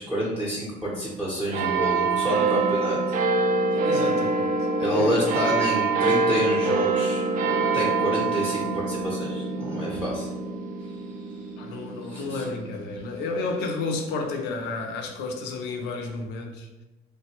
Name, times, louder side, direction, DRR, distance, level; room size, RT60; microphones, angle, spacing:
voice 1, 0.0-3.0 4.8-7.2 7.7-10.3 12.1-12.5, equal, 10° right, -6 dB, 0.7 m, -28 dB
sound 1, 1.5-14.4 15.1-15.2, right 3 dB, 55° right, 0.4 m, -26 dB
voice 2, 3.7-4.5 4.8-5.2 11.6-16.7, left 3 dB, 85° left, 3 dB, 0.5 m, -31 dB
3.2 x 2.2 x 2.9 m, 1.1 s
cardioid pair, 110°, 17 cm